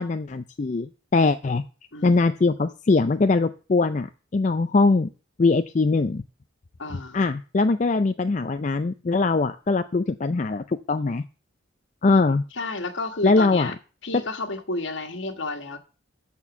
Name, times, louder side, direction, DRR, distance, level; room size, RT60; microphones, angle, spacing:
voice 1, 0.0-1.6 2.0-4.1 4.3-5.1 5.4-6.2 7.1-11.2 12.0-12.4 13.2-13.7 14.1-14.2, left 3 dB, 35° left, 0.4 m, -22 dB
voice 2, 1.9-2.3 6.8-7.2 12.6-13.7 14.0-15.8, left 2 dB, 65° left, 1.5 m, -31 dB
13.0 x 4.5 x 7.2 m
head